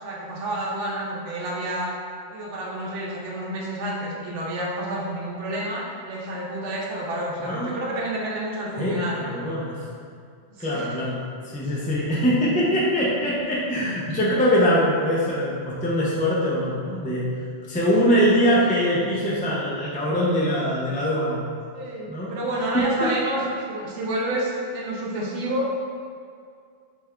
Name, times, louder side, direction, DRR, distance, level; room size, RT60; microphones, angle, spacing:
voice 1, 0.0-1.9 2.3-9.3 10.6-10.9 21.7-25.7, right 1 dB, 85° right, -3 dB, 1.0 m, -29 dB
voice 2, 7.4-7.9 8.8-9.8 10.6-17.3 17.7-21.5 22.1-22.3 22.7-23.1, equal, 15° left, -6 dB, 0.3 m, -23 dB
3.6 x 3.3 x 3.2 m, 2.2 s
omnidirectional pair, 1.2 m